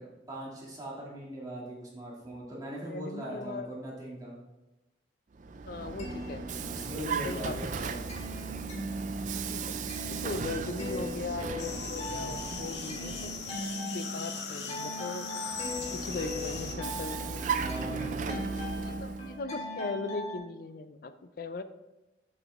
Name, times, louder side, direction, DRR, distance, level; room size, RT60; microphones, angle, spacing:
voice 1, 0.0-4.4 6.7-8.1 17.2-18.2, right 1 dB, 20° right, -5 dB, 1.9 m, -40 dB
voice 2, 2.9-3.7 5.6-6.4 7.1-7.9 9.1-9.6 10.1-13.3 13.8-15.3 15.9-17.4 18.1-18.5 18.7-21.6, left 3 dB, 55° left, 11 dB, 0.4 m, -39 dB
Vehicle, 5.3-13.8 15.5-19.4, right 5 dB, 45° right, 0.4 m, -36 dB
sound 1, 5.8-7.2 7.5-20.4, left 1 dB, 35° left, 1.7 m, -40 dB
sound 2, 11.6-16.8, left 5 dB, 80° left, 0.9 m, -39 dB
7.0 x 5.7 x 3.5 m, 0.99 s
head